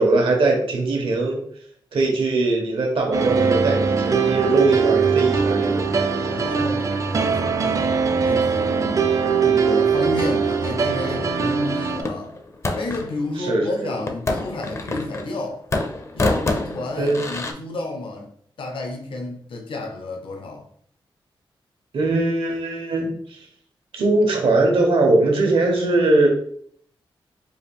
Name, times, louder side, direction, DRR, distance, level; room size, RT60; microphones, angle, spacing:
voice 1, 0.0-1.4 1.9-5.9 6.1-6.3 13.4-13.9 16.9-17.2 21.9-23.5 23.9-26.3, right 2 dB, 85° right, 1.1 m, -20 dB
sound 1, 3.1-12.0, right 5 dB, 35° right, 0.4 m, -21 dB
voice 2, 6.3-7.8 8.2-9.0 9.4-12.4 12.7-15.6 16.1-18.3 18.6-20.6, left 2 dB, 75° left, 0.8 m, -31 dB
sound 2, 12.0-13.1 14.1-15.4 15.7-17.5, left 2 dB, 30° left, 0.5 m, -26 dB
4.7 x 2.5 x 3.4 m
wide cardioid pair, 150°, 9 cm